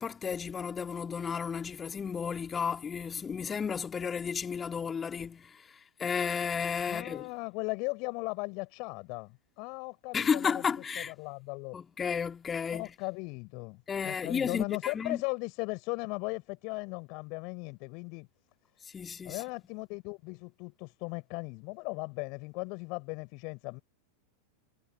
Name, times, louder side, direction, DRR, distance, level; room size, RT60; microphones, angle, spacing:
voice 1, 0.0-7.3 10.1-11.1 11.7-12.9 13.9-15.2 18.9-19.4, left 6 dB, 20° left, 2.7 m, -33 dB
voice 2, 6.9-10.6 11.0-11.8 12.7-18.3 19.2-23.8, left 31 dB, 45° left, 5.7 m, -37 dB
figure-of-eight pair, 90°, 0 cm